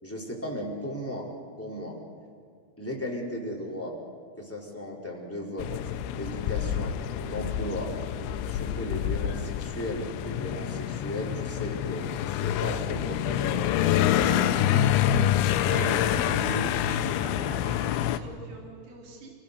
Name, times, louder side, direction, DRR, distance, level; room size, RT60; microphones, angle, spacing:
voice 1, 0.0-1.3 1.6-2.0 2.8-3.9 4.4-5.7 6.1-7.9 8.4-14.9 15.4-16.7, left 1 dB, 5° left, -3 dB, 3.7 m, -36 dB
sound 1, 5.6-18.2, left 10 dB, 80° left, 3.0 m, -27 dB
voice 2, 15.5-19.3, right 2 dB, 30° right, -1 dB, 4.5 m, -45 dB
29.0 x 18.0 x 6.9 m, 2.2 s
omnidirectional pair, 5.6 m